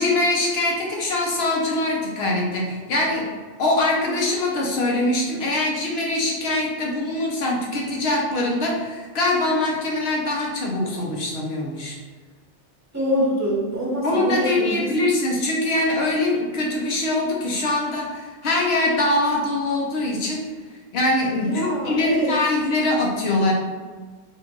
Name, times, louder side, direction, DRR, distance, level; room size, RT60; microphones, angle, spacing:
voice 1, 0.0-3.3 3.6-12.0 14.0-20.4 20.9-23.5, left 2 dB, 65° left, -2 dB, 1.0 m, -23 dB
voice 2, 12.9-14.9 21.3-22.3, equal, 15° right, -6 dB, 0.9 m, -24 dB
4.4 x 2.5 x 2.9 m, 1.4 s
omnidirectional pair, 1.2 m